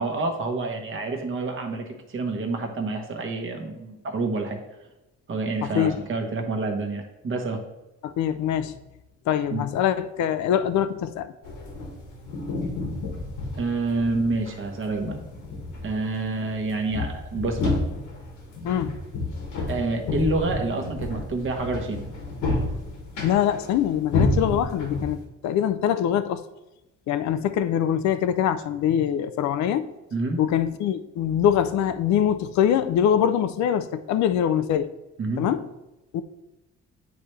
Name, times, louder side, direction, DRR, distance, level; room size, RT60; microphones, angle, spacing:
voice 1, 0.0-4.6 5.3-7.6 9.5-9.6 13.6-15.2 15.8-17.8 19.7-22.0 30.1-30.4 35.2-35.5, right 3 dB, 40° right, 4 dB, 1.1 m, -28 dB
voice 2, 5.6-6.0 8.0-8.8 9.3-11.3 18.6-19.0 23.2-25.2 25.4-26.4 27.1-29.9 30.4-34.9 35.4-35.6 36.1-36.2, left 9 dB, 70° left, 13 dB, 0.4 m, -23 dB
sound 1, 11.4-25.2, left 2 dB, 85° left, 1.6 m, -31 dB
9.2 x 3.2 x 3.2 m, 0.98 s
cardioid pair, 90°, 30 cm